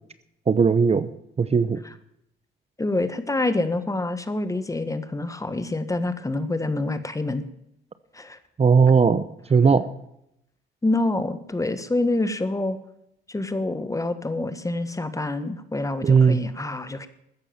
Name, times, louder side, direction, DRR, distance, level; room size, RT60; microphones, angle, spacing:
voice 1, 0.5-1.1 1.4-1.8 8.6-9.2 9.5-9.9 16.0-16.4, right 5 dB, 30° right, 14 dB, 0.8 m, -17 dB
voice 2, 2.8-7.4 8.1-8.4 10.8-12.8 13.3-17.1, left 2 dB, 15° left, 12 dB, 1.6 m, -26 dB
14.0 x 9.8 x 7.1 m, 0.79 s
cardioid pair, 90°, 20 cm